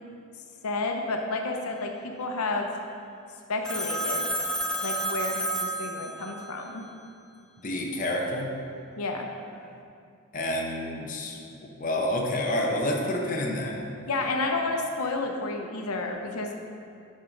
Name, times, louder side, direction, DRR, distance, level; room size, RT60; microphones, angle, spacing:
voice 1, 0.6-1.9 2.2-2.7 3.5-4.3 4.8-6.9 9.0-9.3 14.1-16.5, left 3 dB, 85° left, 2 dB, 0.7 m, -30 dB
Telephone, 3.6-6.5, right 1 dB, 5° left, 0.3 m, -30 dB
voice 2, 7.6-8.5 10.3-11.4 11.8-13.8, left 1 dB, 35° left, -1 dB, 0.7 m, -28 dB
10.5 x 4.6 x 3.8 m, 2.5 s
head